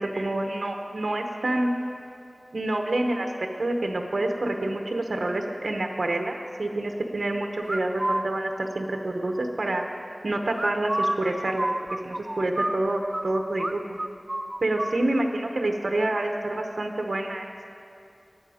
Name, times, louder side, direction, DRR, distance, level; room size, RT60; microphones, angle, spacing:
voice 1, 0.0-1.8 2.5-3.3 3.6-9.8 10.2-14.0 14.6-17.6, right 1 dB, 90° right, 3 dB, 0.9 m, -27 dB
sound 1, 7.7-8.2 10.5-13.3 13.6-13.7 14.0-15.0, right 1 dB, 35° right, 0.4 m, -28 dB
19.5 x 7.9 x 5.0 m, 2.6 s
wide cardioid pair, 50°, 0 cm